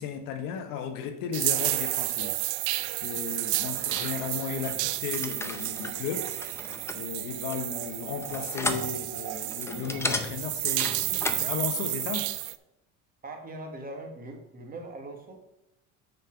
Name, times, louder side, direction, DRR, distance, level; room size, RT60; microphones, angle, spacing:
voice 1, 0.0-6.3 7.0-10.9 11.4-12.3, left 7 dB, 75° left, 1.3 m, -35 dB
sound 1, 1.3-12.6, right 17 dB, 65° right, 0.5 m, -31 dB
sound 2, 3.6-11.5, left 2 dB, 10° left, 0.5 m, -36 dB
voice 2, 13.2-15.4, right 2 dB, 25° right, 1.5 m, -41 dB
7.2 x 5.7 x 5.8 m
cardioid pair, 150°, 33 cm